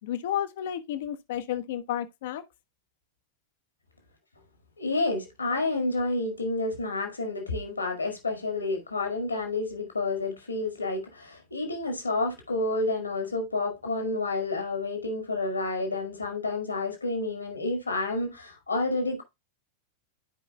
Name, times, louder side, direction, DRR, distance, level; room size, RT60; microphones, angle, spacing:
voice 1, 0.0-2.4, left 10 dB, 55° left, 0.8 m, -32 dB
voice 2, 4.8-19.2, left 2 dB, 80° left, 1.9 m, -29 dB
12.5 x 4.8 x 2.2 m
figure-of-eight pair, 90°, 0 cm